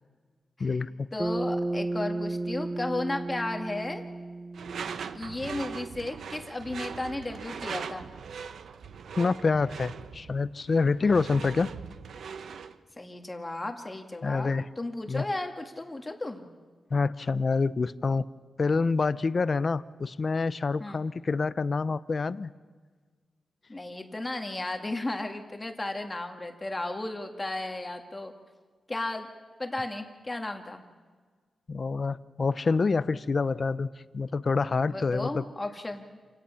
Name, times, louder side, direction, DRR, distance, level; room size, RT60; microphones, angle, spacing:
voice 1, 0.6-1.1 9.2-11.7 14.2-14.7 15.1-15.2 16.9-18.2 18.6-22.5 31.7-33.9 34.1-35.4, left 4 dB, 40° left, 16 dB, 0.6 m, -27 dB
voice 2, 1.1-4.0 5.1-8.1 11.0-11.1 13.0-16.5 20.8-21.0 23.7-28.3 28.9-29.3 29.6-30.8 34.9-36.2, left 2 dB, 20° left, 4 dB, 1.7 m, -34 dB
Bass guitar, 1.2-5.6, right 2 dB, 20° right, 0.6 m, -33 dB
Door / Screech, 4.5-12.8, right 6 dB, 80° right, 0.8 m, -40 dB
28.5 x 17.0 x 5.8 m, 1.5 s
wide cardioid pair, 115°, 0 cm